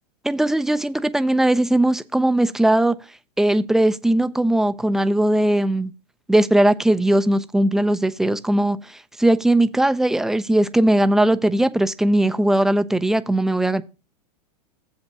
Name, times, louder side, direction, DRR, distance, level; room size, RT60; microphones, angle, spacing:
voice 1, 0.2-2.9 3.4-5.9 6.3-13.8, right 1 dB, ahead, 0.5 m, -19 dB
7.4 x 5.3 x 5.9 m
hypercardioid pair, 110°, 20 cm